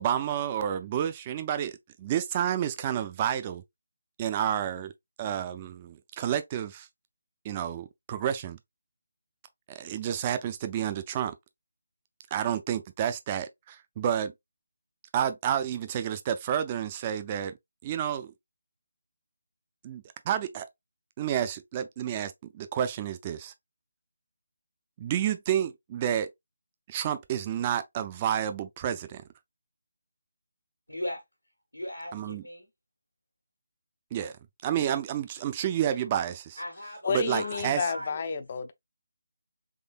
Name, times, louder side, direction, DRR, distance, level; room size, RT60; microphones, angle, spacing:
voice 1, 0.0-3.6 4.2-4.9 5.2-6.9 7.4-8.6 9.7-11.3 12.3-14.3 15.1-17.6 17.8-18.3 19.8-20.7 21.2-23.5 25.0-26.3 26.9-29.2 32.1-32.4 34.1-34.3 34.6-36.6 37.1-37.9, right 10 dB, 25° right, 0.4 m, -30 dB
voice 2, 30.9-31.2 31.7-32.7 36.6-38.2, left 1 dB, 90° left, 1.4 m, -38 dB
voice 3, 37.0-38.7, left 5 dB, 35° left, 0.5 m, -30 dB
3.7 x 3.3 x 2.4 m
figure-of-eight pair, 150°, 0 cm